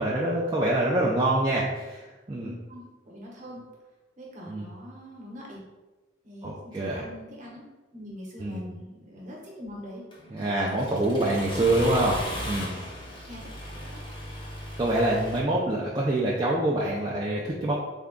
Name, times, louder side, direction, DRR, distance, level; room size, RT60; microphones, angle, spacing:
voice 1, 0.0-2.5 4.5-4.7 6.4-7.0 8.4-8.7 10.3-12.7 14.8-17.7, right 1 dB, 20° right, -5 dB, 0.3 m, -26 dB
voice 2, 2.4-3.6 4.2-5.6 6.2-7.6 7.9-10.0 12.3-12.4 13.3-13.5 13.9-14.0, equal, 40° right, -3 dB, 0.9 m, -43 dB
Accelerating revving vroom, 10.1-15.4, left 1 dB, 25° left, 0.7 m, -37 dB
3.5 x 2.2 x 3.7 m, 1.2 s
head